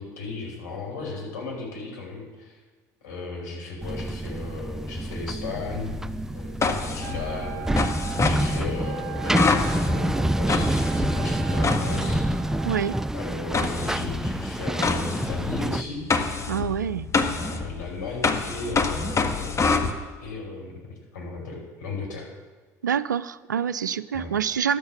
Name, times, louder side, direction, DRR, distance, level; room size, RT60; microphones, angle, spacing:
voice 1, 0.0-2.6 3.0-5.9 6.3-12.3 13.1-16.0 17.4-19.7 20.2-20.7 21.1-22.3 24.1-24.3, left 3 dB, 80° left, -3 dB, 5.0 m, -35 dB
sound 1, 3.8-15.8, right 1 dB, 5° right, 0.4 m, -27 dB
sound 2, 5.9-12.7 13.5-19.9, left 4 dB, 30° left, 1.5 m, -27 dB
Wind instrument woodwind instrument, 7.0-13.2, right 14 dB, 60° right, 1.1 m, -40 dB
voice 2, 12.6-13.0 16.5-17.1 22.8-24.8, right 8 dB, 85° right, 17 dB, 0.4 m, -26 dB
12.0 x 8.6 x 7.1 m, 1.4 s
figure-of-eight pair, 60°, 10 cm